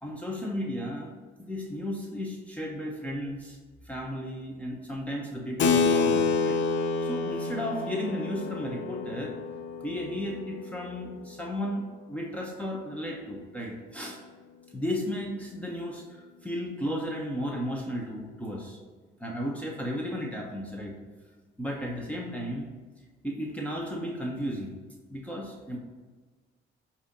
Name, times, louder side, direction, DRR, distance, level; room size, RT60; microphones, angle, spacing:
voice 1, 0.0-3.6 3.8-6.6 7.0-9.3 9.8-14.2 14.7-18.8 19.2-21.0 21.6-22.7 23.2-24.8 25.1-25.8, equal, 5° left, -2 dB, 1.0 m, -34 dB
Keyboard (musical), 5.6-11.6, left 4 dB, 70° left, 0.7 m, -29 dB
7.8 x 2.8 x 5.3 m, 1.3 s
cardioid pair, 90°, 20 cm